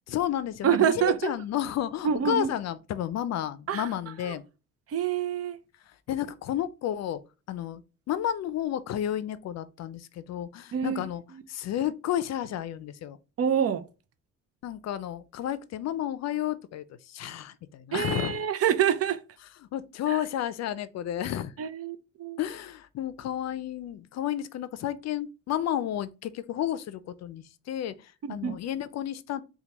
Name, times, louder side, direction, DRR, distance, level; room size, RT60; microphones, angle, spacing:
voice 1, 0.1-4.4 6.1-7.2 7.5-11.2 11.5-13.2 14.6-18.4 19.7-21.5 22.4-29.4, left 11 dB, 60° left, 0.4 m, -32 dB
voice 2, 0.6-1.3 2.0-2.5 3.7-3.9 4.2-4.3 4.9-5.6 10.7-11.1 13.4-13.8 17.9-19.2 20.1-20.2 21.6-22.4 28.2-28.6, right 8 dB, 50° right, 0.6 m, -26 dB
4.4 x 2.3 x 2.9 m
cardioid pair, 90°, 30 cm